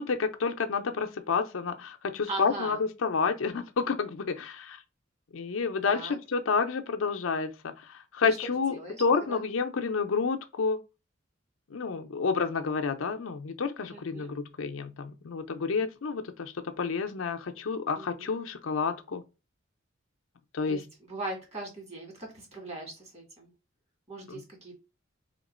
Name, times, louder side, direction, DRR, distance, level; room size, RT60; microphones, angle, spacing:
voice 1, 0.0-4.8 5.3-10.8 11.7-19.2 20.5-20.8 24.3-24.4, left 5 dB, 85° left, 0.5 m, -30 dB
voice 2, 2.3-2.8 5.8-6.2 8.2-8.4 8.7-9.0 9.3-9.4 13.9-14.3 18.0-18.3 20.7-23.5 24.1-24.8, right 2 dB, 35° right, 1.9 m, -40 dB
3.1 x 2.9 x 4.2 m
head